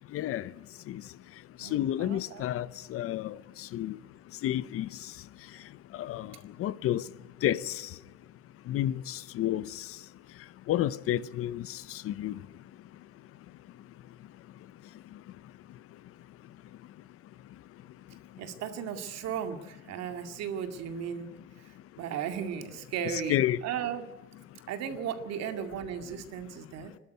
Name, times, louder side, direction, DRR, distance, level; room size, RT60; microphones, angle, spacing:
voice 1, 0.1-0.5 0.9-1.0 1.6-4.0 4.4-4.9 5.9-6.3 6.6-7.0 7.4-7.9 8.7-9.8 10.7-12.4 23.0-23.6, left 12 dB, 50° left, 0.7 m, -30 dB
voice 2, 1.6-2.4 18.4-21.3 22.0-24.0 24.7-26.9, right 8 dB, 60° right, 2.2 m, -36 dB
26.0 x 12.5 x 9.3 m
cardioid pair, 150°, 30 cm